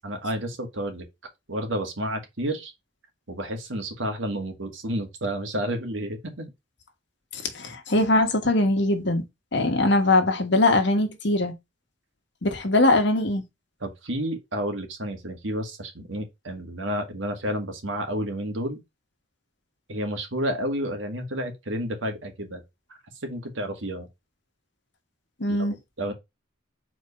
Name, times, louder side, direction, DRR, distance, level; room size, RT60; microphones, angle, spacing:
voice 1, 0.0-1.0 1.5-2.7 3.3-6.5 13.8-18.8 19.9-22.6 23.2-24.1 25.6-25.7 26.0-26.1, equal, 70° right, 1.9 m, -30 dB
voice 2, 7.5-9.2 9.5-11.5 12.4-13.4 25.4-25.7, left 2 dB, 60° left, 1.4 m, -21 dB
4.6 x 3.9 x 5.4 m
head